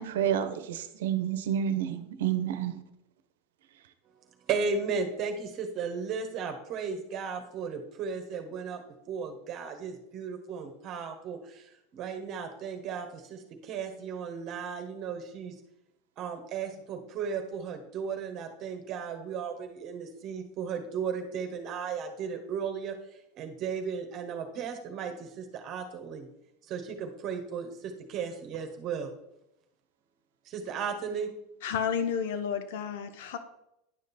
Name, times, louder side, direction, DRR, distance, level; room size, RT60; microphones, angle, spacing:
voice 1, 0.0-2.8, right 9 dB, 80° right, 10 dB, 0.9 m, -29 dB
voice 2, 4.5-8.8 9.1-15.5 16.2-22.9 23.4-26.3 26.7-29.1 30.4-31.3, right 6 dB, 45° right, 5 dB, 1.3 m, -35 dB
voice 3, 31.6-33.4, left 7 dB, 75° left, 10 dB, 1.0 m, -31 dB
10.5 x 5.2 x 4.3 m, 0.82 s
supercardioid pair, 110°, 0 cm